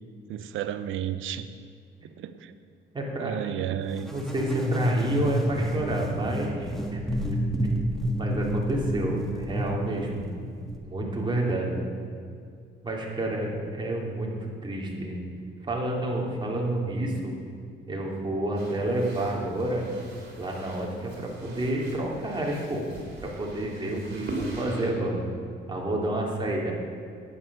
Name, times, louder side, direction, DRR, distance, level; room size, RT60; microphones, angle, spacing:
voice 1, 0.3-1.5 2.0-2.6 3.2-4.1, right 10 dB, 85° right, 12 dB, 0.7 m, -32 dB
voice 2, 2.9-3.6 4.1-7.0 8.2-10.3 10.8-11.9 12.8-15.2 15.6-17.3 17.9-19.9 20.4-22.9 23.2-25.3 25.7-26.7, right 1 dB, 25° right, -2 dB, 2.8 m, -29 dB
sound 1, 4.0-10.8, right 1 dB, ahead, 1.8 m, -29 dB
sound 2, 18.6-24.9, right 2 dB, 55° right, 3.4 m, -41 dB
11.0 x 9.4 x 6.1 m, 2.3 s
cardioid pair, 90°, 20 cm